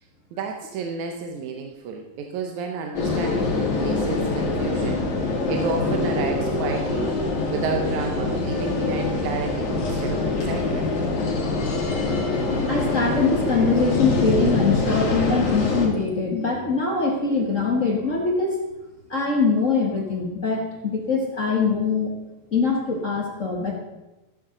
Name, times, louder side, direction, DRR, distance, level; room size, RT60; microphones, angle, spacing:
voice 1, 0.3-7.2 7.5-10.9, right 5 dB, 85° right, 3 dB, 2.4 m, -31 dB
sound 1, 2.9-15.9, left 3 dB, 75° left, 3.8 m, -24 dB
voice 2, 12.7-18.6 19.1-22.1 22.5-23.7, left 4 dB, 35° left, 0 dB, 1.4 m, -23 dB
14.5 x 12.0 x 3.9 m, 1.1 s
omnidirectional pair, 3.3 m